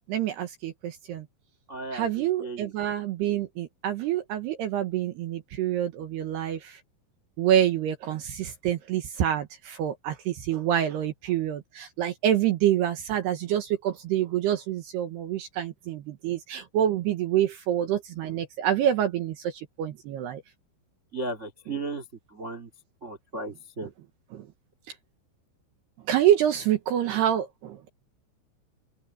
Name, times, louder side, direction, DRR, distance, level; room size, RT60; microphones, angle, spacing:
voice 1, 0.1-1.3 1.9-6.8 7.4-19.5 19.8-20.4 23.8-23.9 24.3-24.4 26.1-27.9, right 11 dB, 70° right, 2.9 m, -27 dB
voice 2, 1.7-2.7 21.1-22.0 22.3-22.7 23.0-23.9, right 2 dB, 85° right, 0.6 m, -35 dB
open air
omnidirectional pair, 5.7 m